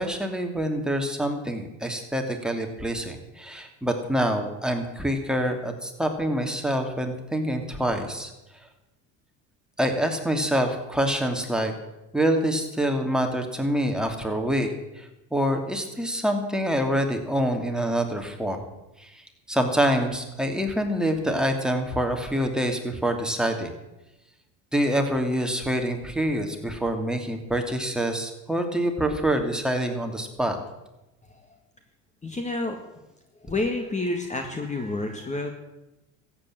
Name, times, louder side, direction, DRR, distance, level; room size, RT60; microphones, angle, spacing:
voice 1, 0.0-8.3 9.8-11.7 12.1-18.6 19.0-19.2 19.5-23.7 24.7-30.6, equal, ahead, 3 dB, 2.7 m, -26 dB
voice 2, 32.2-32.8 33.4-35.5, left 2 dB, 20° left, 5 dB, 2.0 m, -29 dB
14.0 x 8.7 x 9.2 m, 0.97 s
supercardioid pair, 90°, 37 cm